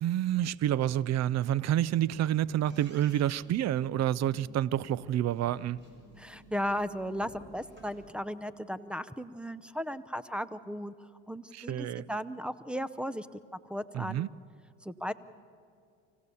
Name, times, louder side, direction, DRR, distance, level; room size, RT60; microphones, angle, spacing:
voice 1, 0.0-5.8 11.5-12.1 13.9-14.3, right 11 dB, 45° right, 0.5 m, -28 dB
sound 1, 1.6-8.1, right 1 dB, 30° right, 7.1 m, -55 dB
voice 2, 6.2-10.9 11.3-13.3 13.7-14.3 14.8-15.1, equal, 5° right, 0.6 m, -36 dB
25.0 x 16.0 x 7.0 m
supercardioid pair, 95°, 38 cm